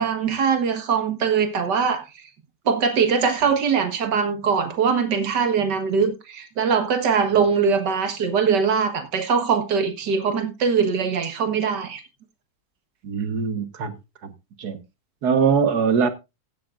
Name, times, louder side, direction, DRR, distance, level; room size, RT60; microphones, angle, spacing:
voice 1, 0.0-2.0 2.7-12.0, right 6 dB, 85° right, 2.1 m, -22 dB
voice 2, 13.0-13.9 14.2-14.3 14.6-14.8 15.2-16.1, right 6 dB, 70° right, 1.8 m, -22 dB
16.0 x 9.4 x 2.5 m
omnidirectional pair, 1.8 m